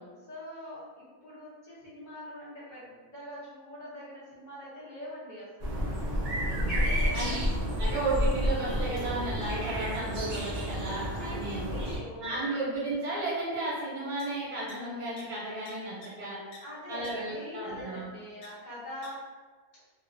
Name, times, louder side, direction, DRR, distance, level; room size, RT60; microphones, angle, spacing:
voice 1, 0.0-5.8 6.7-7.5 7.8-8.2 10.9-12.5 16.6-19.2, left 1 dB, 40° left, -9 dB, 0.8 m, -44 dB
sound 1, 5.6-12.0, equal, 55° right, 0.5 m, -30 dB
voice 2, 6.5-6.8 7.1-7.4 7.8-11.7 12.2-16.4 16.9-18.1, right 2 dB, 85° right, -6 dB, 1.2 m, -34 dB
sound 2, 14.2-14.3 14.7-14.8 15.2-15.3 15.7-15.8 16.0-16.1 16.5-16.6 17.0-17.1 18.4-18.5 19.0-19.1, left 4 dB, 70° left, 0.9 m, -48 dB
2.3 x 2.3 x 2.5 m, 1.4 s
omnidirectional pair, 1.6 m